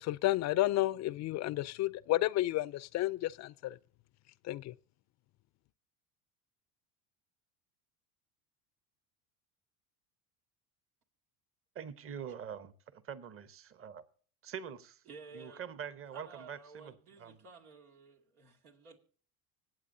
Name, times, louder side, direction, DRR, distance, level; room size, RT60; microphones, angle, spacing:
voice 1, 0.0-3.8 4.5-4.7, left 16 dB, 40° left, 0.5 m, -31 dB
voice 2, 11.7-14.0 14.4-15.0 15.3-17.4, right 8 dB, 30° right, 1.0 m, -45 dB
voice 3, 15.1-15.6 16.1-19.0, right 4 dB, 90° right, 2.3 m, -53 dB
25.0 x 8.4 x 2.7 m
hypercardioid pair, 85°, 43 cm